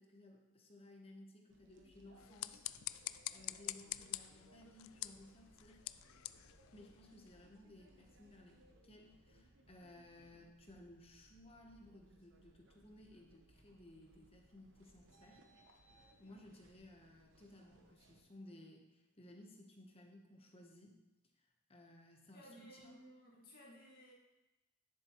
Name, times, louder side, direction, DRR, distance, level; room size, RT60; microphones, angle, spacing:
voice 1, 0.0-2.6 2.9-5.8 6.7-15.4 15.8-21.0 21.4-23.0, left 1 dB, 30° left, 2 dB, 1.0 m, -59 dB
sound 1, 1.5-18.2, right 1 dB, 60° right, 1.0 m, -67 dB
sound 2, 2.1-7.4, left 16 dB, 75° left, 0.3 m, -47 dB
voice 2, 22.3-24.1, equal, 45° left, -4 dB, 2.1 m, -58 dB
9.9 x 7.6 x 3.0 m, 0.97 s
head